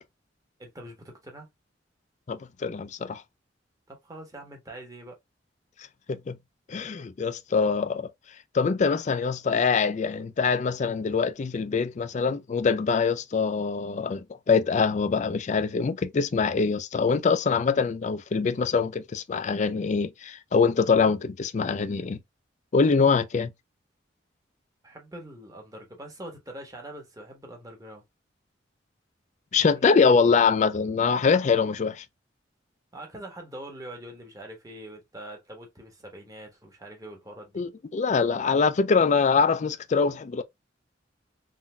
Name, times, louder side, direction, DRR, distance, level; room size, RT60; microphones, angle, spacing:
voice 1, 0.6-1.5 3.9-5.2 24.8-28.0 29.6-30.3 32.9-37.6, right 1 dB, 20° right, 1.1 m, -43 dB
voice 2, 2.3-3.2 6.1-6.4 6.7-8.1 8.5-22.2 22.7-23.5 29.5-32.0 37.6-40.4, left 5 dB, 40° left, 0.3 m, -24 dB
3.8 x 2.6 x 2.2 m
head